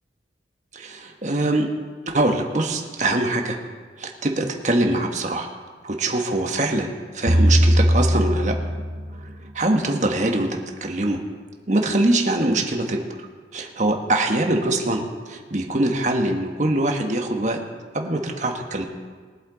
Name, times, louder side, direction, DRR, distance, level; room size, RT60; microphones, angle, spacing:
voice 1, 0.7-1.7 2.1-3.6 4.0-5.5 5.8-8.5 9.2-11.2 11.7-13.0 13.5-17.6 17.9-18.8, right 2 dB, 45° right, 3 dB, 1.3 m, -23 dB
sound 1, 7.3-9.5, equal, 75° right, 1.7 m, -19 dB
22.0 x 8.4 x 4.0 m, 1.6 s
head